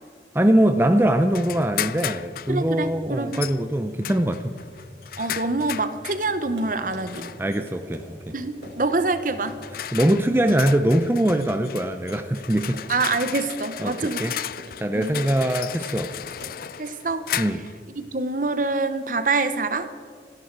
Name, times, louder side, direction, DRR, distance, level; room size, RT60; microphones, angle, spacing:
voice 1, 0.3-4.5 7.4-8.3 9.9-12.8 13.8-14.3 14.8-16.1 17.4-17.6, right 1 dB, 10° right, 7 dB, 0.6 m, -22 dB
sound 1, 1.3-2.6 3.3-3.6 4.0-6.2 7.1-7.6 8.6-8.8 9.5-17.8, left 10 dB, 50° left, 0.4 m, -34 dB
sound 2, 1.4-12.2, equal, 30° right, 2.2 m, -47 dB
voice 2, 2.5-3.5 5.2-7.3 8.3-9.6 12.9-14.3 14.9-15.2 16.8-17.3 18.0-19.9, right 3 dB, 45° right, 11 dB, 1.0 m, -26 dB
Run, 6.6-16.8, right 1 dB, 75° right, 3.8 m, -44 dB
27.5 x 11.0 x 4.7 m, 2.1 s
head